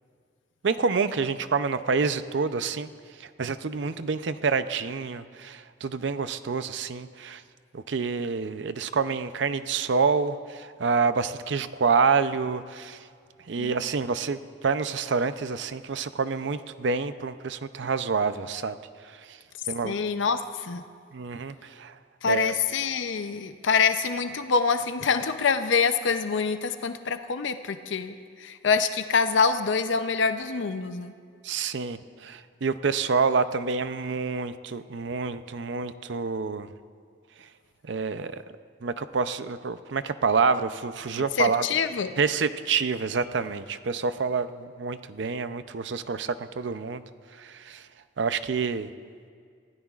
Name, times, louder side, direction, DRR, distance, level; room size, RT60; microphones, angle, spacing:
voice 1, 0.6-2.9 3.2-7.4 7.7-13.0 13.5-18.8 19.3-19.4 19.7-19.9 21.1-21.9 22.3-22.5 31.4-36.7 37.9-38.4 38.8-41.7 42.2-47.0 47.4-47.8 48.2-48.9, right 5 dB, 70° right, 12 dB, 0.5 m, -27 dB
voice 2, 19.8-20.8 22.2-31.1 41.2-42.1, left 5 dB, 75° left, 9 dB, 0.6 m, -26 dB
26.0 x 16.5 x 2.4 m, 2.1 s
head